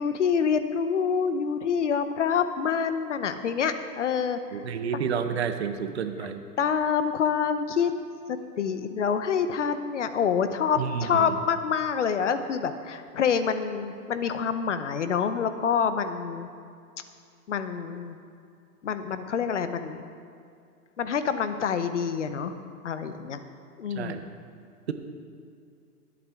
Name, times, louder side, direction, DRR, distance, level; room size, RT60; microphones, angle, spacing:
voice 1, 0.0-4.6 6.6-7.9 8.6-16.5 17.5-18.2 18.8-20.0 21.0-22.6 22.8-23.4 23.8-24.2, left 6 dB, 50° left, 10 dB, 0.8 m, -27 dB
voice 2, 4.5-6.4 10.8-11.4 23.9-24.3, right 7 dB, 45° right, 8 dB, 0.8 m, -30 dB
21.5 x 8.5 x 3.6 m, 2.4 s
hypercardioid pair, 170°, 47 cm